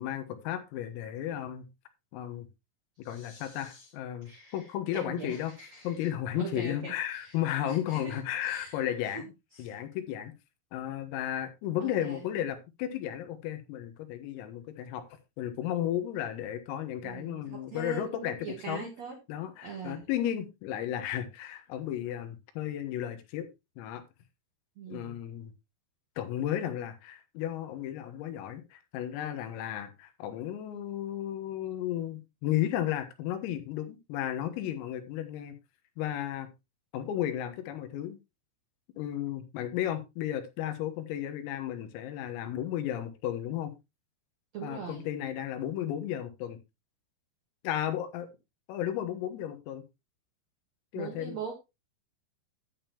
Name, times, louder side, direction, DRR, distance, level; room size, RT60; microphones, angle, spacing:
voice 1, 0.0-1.7 2.1-2.5 3.1-5.5 5.8-9.3 9.6-10.3 10.7-15.0 15.4-18.9 19.3-23.5 23.8-24.0 24.9-25.5 26.2-35.6 36.0-36.5 36.9-38.2 39.0-43.7 44.6-46.6 47.6-48.3 48.7-49.8 50.9-51.4, left 11 dB, 90° left, 3.9 m, -34 dB
voice 2, 3.0-3.9 4.2-4.6 4.9-7.4 7.6-8.8 9.1-9.2 9.5-9.8 11.8-12.2 17.0-19.2 19.6-20.0 24.8-25.2 44.5-45.1 50.9-51.5, right 5 dB, 80° right, 1.5 m, -42 dB
11.0 x 8.9 x 2.9 m
omnidirectional pair, 6.0 m